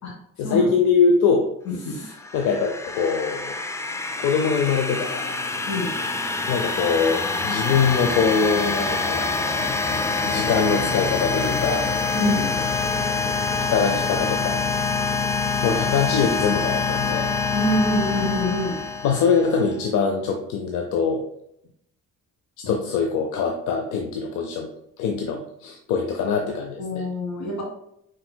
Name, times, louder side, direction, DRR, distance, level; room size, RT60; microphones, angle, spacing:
voice 1, 0.4-1.5 1.8-3.6 4.2-5.3 6.5-9.3 10.2-11.9 13.6-14.6 15.6-17.3 19.0-21.2 22.7-24.7 25.0-27.0, left 5 dB, 90° left, 3 dB, 0.6 m, -23 dB
voice 2, 1.7-2.0 5.7-5.9 12.1-12.5 17.5-18.8 26.8-27.6, left 1 dB, 65° left, 0 dB, 1.8 m, -25 dB
sound 1, 2.1-19.7, left 4 dB, 10° left, 0.4 m, -25 dB
6.1 x 3.8 x 2.2 m, 0.75 s
cardioid pair, 90°, 30 cm